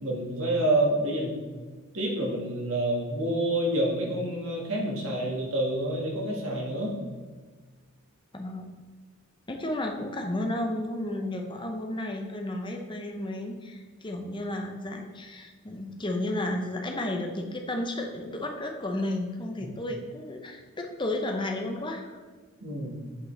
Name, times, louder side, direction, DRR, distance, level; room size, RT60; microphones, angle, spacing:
voice 1, 0.0-1.4 1.9-7.0 19.6-19.7 22.6-23.0, right 1 dB, 70° right, -3 dB, 1.8 m, -28 dB
voice 2, 8.3-8.8 9.5-22.2, left 1 dB, 20° left, 3 dB, 0.8 m, -33 dB
8.1 x 5.2 x 3.3 m, 1.4 s
head